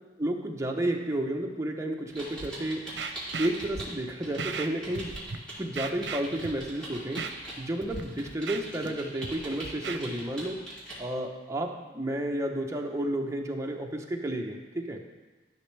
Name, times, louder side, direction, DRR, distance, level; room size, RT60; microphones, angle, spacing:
voice 1, 0.2-2.8 3.4-5.2 5.6-7.3 7.6-10.6 11.0-15.0, right 1 dB, 15° right, 1 dB, 0.9 m, -31 dB
sound 1, 2.1-3.9 4.2-11.0, right 1 dB, 5° left, 3.3 m, -42 dB
Scratching (performance technique), 2.4-2.5 3.0-3.8 4.4-4.7 4.9-5.4 5.7-6.7 7.2-7.3 7.8-8.0 8.3-8.9 9.2-10.0, right 5 dB, 75° right, 0.6 m, -36 dB
14.0 x 6.2 x 3.4 m, 1.2 s
head